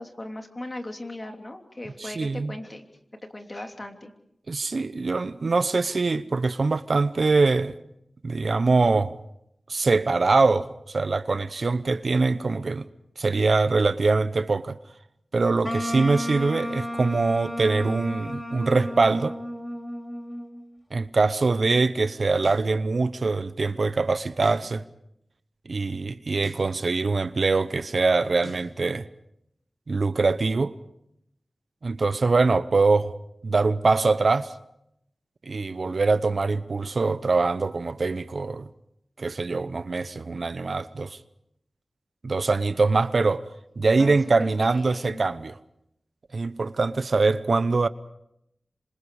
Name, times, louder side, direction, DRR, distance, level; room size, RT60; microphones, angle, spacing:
voice 1, 0.0-2.8 3.3-4.1 43.9-45.2, left 1 dB, 35° left, 3.0 m, -38 dB
voice 2, 2.0-2.5 4.5-7.8 8.2-9.2 9.7-12.9 13.2-14.8 15.3-19.4 20.9-24.8 25.7-29.1 29.9-30.7 31.8-33.1 33.4-34.5 35.5-38.7 39.2-41.2 42.2-43.5 43.8-45.6 46.3-47.9, right 3 dB, 65° right, 0.9 m, -23 dB
Wind instrument woodwind instrument, 15.6-20.7, left 1 dB, 10° left, 3.4 m, -33 dB
sound 1, 22.4-22.7 24.4-24.7 26.4-26.7 28.4-28.7, left 2 dB, 80° left, 3.3 m, -43 dB
27.5 x 26.0 x 4.9 m
wide cardioid pair, 60°, 0 cm